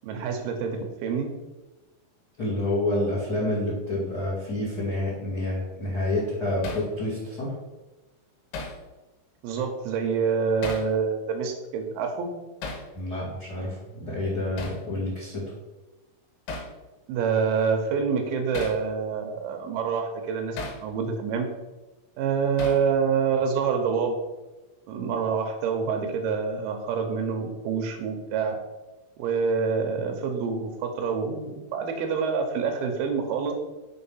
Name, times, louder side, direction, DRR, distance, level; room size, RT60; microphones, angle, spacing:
voice 1, 0.0-1.3 9.4-12.3 17.1-21.5 22.2-24.2 24.9-28.6 29.2-33.5, right 6 dB, 80° right, 4 dB, 2.3 m, -27 dB
voice 2, 2.4-7.5 12.9-15.5, left 1 dB, 45° left, -7 dB, 1.2 m, -28 dB
Hammer, 6.6-6.9 8.5-8.8 10.6-10.9 12.6-12.9 14.6-14.8 16.5-16.7 18.5-18.8 20.6-20.8 22.6-22.9, left 3 dB, 80° left, 3.2 m, -34 dB
6.4 x 4.3 x 5.5 m, 1.1 s
omnidirectional pair, 5.4 m